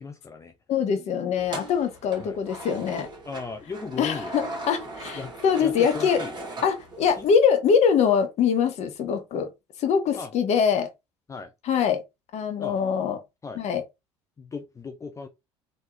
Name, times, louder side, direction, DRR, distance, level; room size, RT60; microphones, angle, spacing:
voice 1, 0.0-0.5 2.2-2.4 3.3-4.6 5.2-6.4 7.1-7.3 10.1-10.3 11.3-11.5 12.6-12.8 13.4-13.6 14.4-15.3, left 4 dB, 20° left, 0.6 m, -37 dB
voice 2, 0.7-3.1 4.0-6.2 6.6-9.5 9.8-10.9 11.7-12.0 12.3-13.2 13.6-13.8, left 7 dB, 45° left, 1.0 m, -23 dB
sound 1, 1.4-7.4, right 2 dB, 30° right, 1.5 m, -38 dB
3.8 x 2.6 x 3.0 m
figure-of-eight pair, 60°, 15 cm